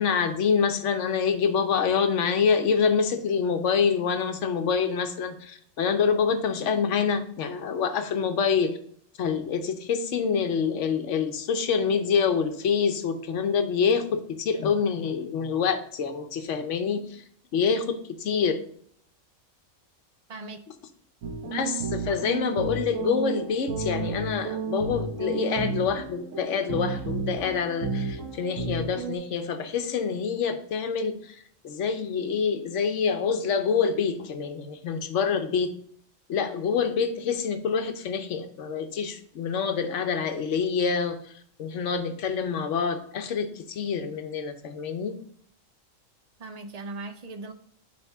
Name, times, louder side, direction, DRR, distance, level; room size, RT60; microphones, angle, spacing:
voice 1, 0.0-8.8 9.2-17.2 17.5-18.6 21.4-31.4 31.6-35.7 36.3-41.2 41.6-45.2, left 6 dB, 70° left, 8 dB, 1.1 m, -26 dB
sound 1, 21.2-29.2, right 4 dB, 80° right, 1.2 m, -32 dB
voice 2, 46.4-47.5, right 2 dB, 45° right, 7 dB, 0.6 m, -38 dB
9.2 x 3.4 x 3.5 m, 0.64 s
omnidirectional pair, 1.3 m